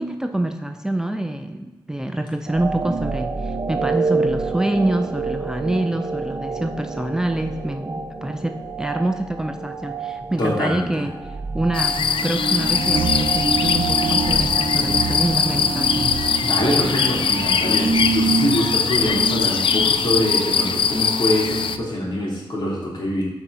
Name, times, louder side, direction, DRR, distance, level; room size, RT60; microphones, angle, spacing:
voice 1, 0.0-11.1 11.5-16.2, right 1 dB, 5° right, 6 dB, 0.5 m, -26 dB
sound 1, 2.5-21.8, right 4 dB, 45° right, 0.9 m, -27 dB
voice 2, 10.4-10.9 16.4-23.2, left 1 dB, 65° left, -4 dB, 3.0 m, -24 dB
sound 2, 11.7-21.8, left 6 dB, 90° left, 0.5 m, -21 dB
8.2 x 5.3 x 5.8 m, 1.1 s
wide cardioid pair, 115°, 9 cm